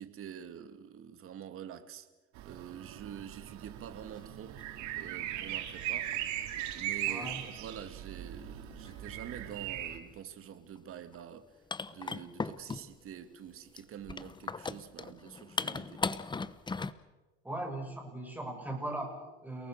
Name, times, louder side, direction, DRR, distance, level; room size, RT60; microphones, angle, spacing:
voice 1, 0.0-2.1 2.4-4.6 4.9-6.2 6.7-11.5 11.9-16.1, right 9 dB, 45° right, 2.4 m, -46 dB
sound 1, 2.3-10.0, right 12 dB, 65° right, 3.5 m, -39 dB
sound 2, 4.6-4.7 6.1-6.2 7.0-7.5 8.7-9.0 10.8-10.9 11.1-11.2 11.7-13.1 13.8-16.9, left 4 dB, 15° left, 1.0 m, -37 dB
voice 2, 7.0-7.4 17.4-19.7, right 1 dB, 5° right, 6.8 m, -39 dB
30.0 x 19.0 x 6.8 m
supercardioid pair, 110°, 30 cm